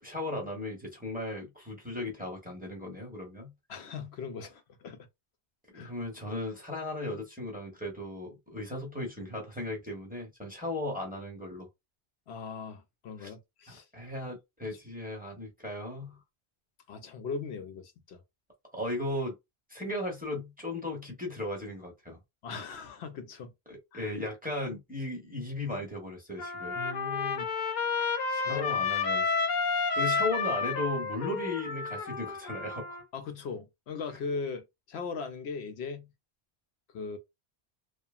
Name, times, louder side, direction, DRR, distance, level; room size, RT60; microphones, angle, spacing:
voice 1, 0.0-3.5 5.7-11.7 13.2-13.3 13.7-16.2 18.7-19.3 19.7-22.2 23.7-26.8 28.3-29.3 30.0-33.0, left 1 dB, 10° right, 0.8 m, -36 dB
voice 2, 3.7-5.1 5.7-5.9 12.3-13.9 16.9-18.2 22.4-23.5 23.9-24.1 26.8-27.5 28.4-28.7 29.9-30.1 33.1-36.1 36.9-37.2, left 5 dB, 80° left, 0.9 m, -39 dB
Trumpet, 26.4-33.0, left 4 dB, 55° left, 0.5 m, -31 dB
2.7 x 2.4 x 2.3 m
omnidirectional pair, 1.1 m